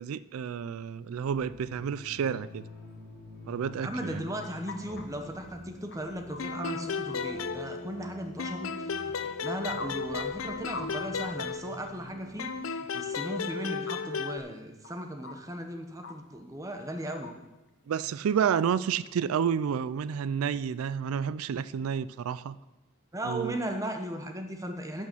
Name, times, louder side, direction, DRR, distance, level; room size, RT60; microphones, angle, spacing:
voice 1, 0.0-2.7 3.5-4.2 17.9-22.5 23.2-23.5, right 7 dB, 85° right, 17 dB, 0.3 m, -30 dB
sound 1, 1.3-12.6, left 1 dB, 35° left, 1.6 m, -47 dB
voice 2, 3.8-17.3 23.1-25.1, right 1 dB, 15° right, 5 dB, 0.9 m, -37 dB
sound 2, 4.0-5.0 5.4-5.5 5.9-6.6 7.1-7.2 9.2-9.3 9.8-9.9 10.3-10.4 10.7-10.9 11.2-11.3 13.2-13.3 13.9-14.0 14.5-14.6 14.8-14.9 15.2-15.3 16.0-16.1 17.2-17.3 17.7-17.8, left 3 dB, 55° left, 1.1 m, -42 dB
sound 3, 6.4-8.1 8.4-12.0 12.4-14.4, left 5 dB, 80° left, 0.6 m, -34 dB
11.0 x 6.4 x 6.1 m, 1.1 s
head